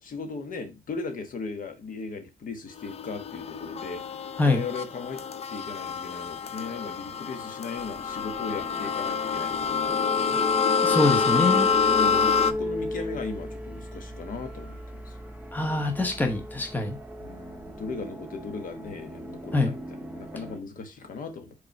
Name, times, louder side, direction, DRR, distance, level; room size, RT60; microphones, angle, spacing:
voice 1, 0.0-4.0 4.4-5.2 5.5-10.4 11.9-15.2 17.2-21.5, left 4 dB, 70° left, 1.3 m, -37 dB
sound 1, 2.8-12.5, left 6 dB, 45° left, 0.5 m, -27 dB
sound 2, 8.0-20.6, left 1 dB, 10° right, 0.8 m, -35 dB
voice 2, 10.8-11.7 15.5-17.0 19.5-19.7, left 2 dB, 10° left, 1.1 m, -24 dB
5.3 x 4.3 x 4.5 m
wide cardioid pair, 155°, 15 cm